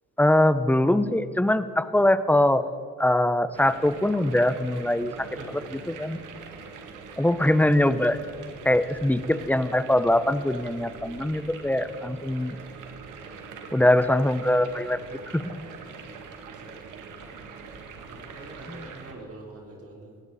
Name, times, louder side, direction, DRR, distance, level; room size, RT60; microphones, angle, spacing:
voice 1, 0.2-2.7 3.0-5.3 5.9-6.2 7.2-8.2 8.6-12.6 13.7-15.4 18.7-18.9, left 1 dB, 5° left, 13 dB, 0.8 m, -22 dB
sound 1, 3.5-19.1, right 5 dB, 85° right, 2.1 m, -43 dB
voice 2, 5.3-5.8 16.4-16.8 18.1-20.1, right 2 dB, 50° right, -1 dB, 3.8 m, -44 dB
21.0 x 16.0 x 4.2 m, 2.4 s
cardioid pair, 90°, 30 cm